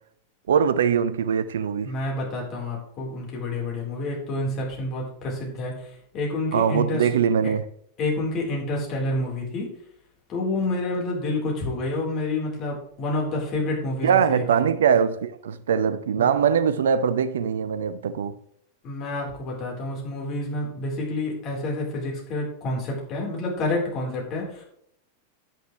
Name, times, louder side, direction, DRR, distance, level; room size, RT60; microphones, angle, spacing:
voice 1, 0.5-1.9 6.5-7.7 14.0-18.3, right 7 dB, 65° right, 0.6 m, -22 dB
voice 2, 1.8-5.9 6.1-7.1 7.4-7.5 8.0-9.7 10.3-14.6 16.2-16.3 18.8-24.6, left 2 dB, 35° left, 4.0 m, -28 dB
10.0 x 9.3 x 3.3 m
figure-of-eight pair, 90°, 0 cm